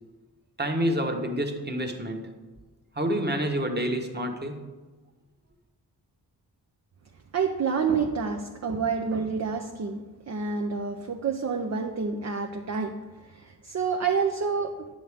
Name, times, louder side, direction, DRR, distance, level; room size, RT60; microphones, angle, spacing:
voice 1, 0.6-2.3 2.9-4.6, equal, 25° right, 4 dB, 1.3 m, -28 dB
voice 2, 7.3-15.0, right 5 dB, 40° right, 4 dB, 0.7 m, -28 dB
9.2 x 6.4 x 3.6 m, 1.3 s
cardioid pair, 40°, 42 cm